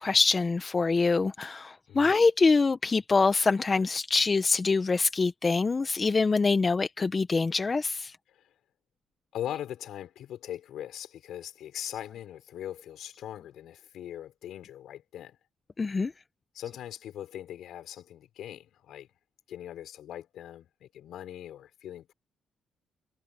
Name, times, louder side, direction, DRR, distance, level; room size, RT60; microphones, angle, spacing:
voice 1, 0.0-8.2 15.8-16.1, left 4 dB, 30° left, 1.1 m, -25 dB
voice 2, 9.3-15.4 16.5-19.1 19.5-22.1, left 11 dB, 75° left, 6.6 m, -40 dB
cardioid pair, 90°, 0 cm